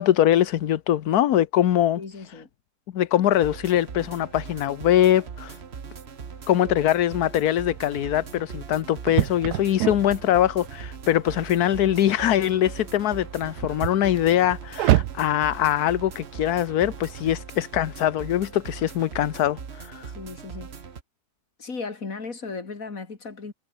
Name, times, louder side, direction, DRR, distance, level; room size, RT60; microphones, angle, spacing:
voice 1, 0.0-2.0 2.9-5.6 6.5-20.1, left 11 dB, 80° left, 1.4 m, -22 dB
voice 2, 2.0-2.5 20.1-20.8 21.6-23.5, left 4 dB, 60° left, 3.2 m, -36 dB
sound 1, 3.3-21.0, right 6 dB, 45° right, 1.5 m, -40 dB
sound 2, 7.6-17.3, right 15 dB, 90° right, 1.2 m, -30 dB
omnidirectional pair, 1.6 m